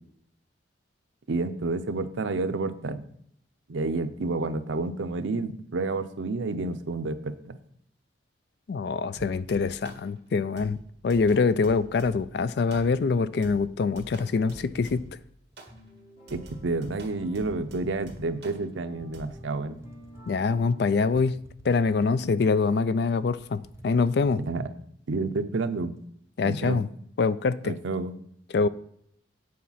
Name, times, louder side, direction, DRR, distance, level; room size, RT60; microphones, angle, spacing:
voice 1, 1.3-3.0 3.7-7.6 16.3-19.8 24.3-24.7 25.1-25.9 26.4-26.8 27.6-28.1, right 3 dB, 85° right, 0.6 m, -30 dB
voice 2, 8.7-10.8 11.0-15.0 20.3-21.4 21.6-24.4 26.4-26.9 27.2-27.7 28.5-28.7, left 4 dB, 60° left, 0.4 m, -24 dB
sound 1, 9.1-10.1 10.6-12.4 12.7-13.1 13.4-15.2 15.6-15.8 16.3-18.7 19.1-19.3, right 1 dB, 60° right, 1.7 m, -47 dB
sound 2, 14.6-15.9 16.7-16.8 17.2-18.3 19.0-20.7 21.2-22.6 22.9-23.0 23.3-24.5, equal, 15° right, 0.6 m, -49 dB
sound 3, 15.7-20.8, equal, 45° left, 2.5 m, -52 dB
8.6 x 4.2 x 5.6 m
head